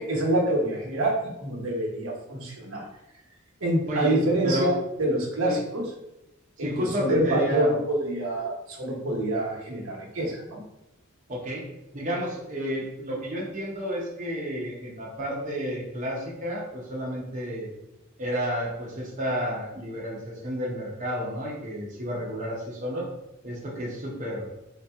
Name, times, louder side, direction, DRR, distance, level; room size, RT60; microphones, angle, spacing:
voice 1, 0.0-2.8 3.6-5.9 6.6-10.6, right 1 dB, 80° right, -1 dB, 1.1 m, -26 dB
voice 2, 3.9-4.2 4.4-4.7 5.5-5.6 6.6-7.7 11.3-11.7 11.9-17.7 18.2-23.1 23.4-24.5, equal, 35° right, -4 dB, 0.7 m, -31 dB
3.9 x 2.8 x 3.4 m, 0.92 s
head